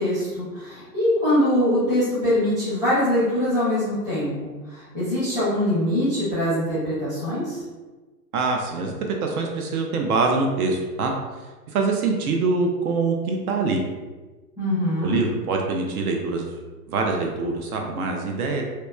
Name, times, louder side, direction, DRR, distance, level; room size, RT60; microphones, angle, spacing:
voice 1, 0.0-7.6 14.6-15.2, left 1 dB, 10° right, -12 dB, 0.6 m, -23 dB
voice 2, 8.3-11.1 11.4-13.8 15.0-16.6 16.9-18.6, right 3 dB, 65° right, 1 dB, 0.5 m, -24 dB
2.8 x 2.1 x 2.2 m, 1.3 s
hypercardioid pair, 155°, 47 cm